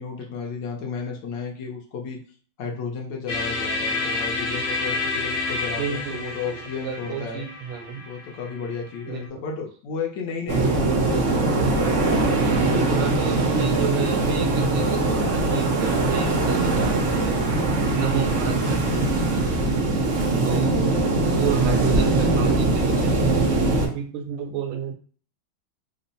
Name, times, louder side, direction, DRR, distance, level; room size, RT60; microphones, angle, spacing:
voice 1, 0.0-2.2 2.6-7.4 8.1-13.0 20.9-21.4, left 5 dB, 70° left, 1 dB, 1.2 m, -33 dB
sound 1, 3.3-9.2, left 3 dB, 45° left, 0.8 m, -29 dB
voice 2, 5.8-8.1 9.1-9.2 10.5-10.8 12.7-19.6 20.4-24.9, right 8 dB, 80° right, 5 dB, 1.5 m, -32 dB
sound 2, 10.5-23.9, right 2 dB, 60° right, 0.7 m, -21 dB
3.6 x 2.0 x 4.0 m, 0.43 s
omnidirectional pair, 2.3 m